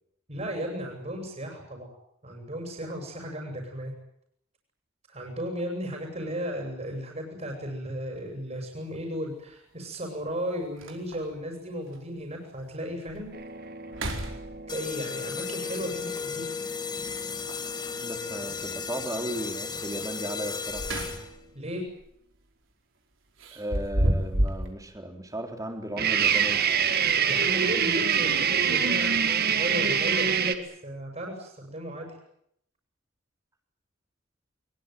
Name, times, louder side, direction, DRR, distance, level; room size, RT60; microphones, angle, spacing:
voice 1, 0.3-1.9 2.2-3.9 5.1-13.3 14.7-16.5 21.5-21.8 27.3-32.1, equal, 35° right, 1 dB, 7.1 m, -35 dB
sound 1, 8.1-8.2 9.9-10.0 10.4-10.5 10.8-11.4 11.9-12.0 12.6-12.7 13.1-13.4 13.8-14.9 17.0-17.7 20.4-21.5 21.9-22.1 23.4-24.7, equal, 70° right, 4.8 m, -30 dB
sound 2, 13.3-19.0 26.0-30.5, right 7 dB, 50° right, 1.9 m, -27 dB
sound 3, 14.7-21.5, left 5 dB, 20° left, 1.5 m, -35 dB
voice 2, 18.0-20.8 23.5-26.7, right 1 dB, 15° right, 4 dB, 3.9 m, -35 dB
23.0 x 22.5 x 9.4 m, 0.73 s
head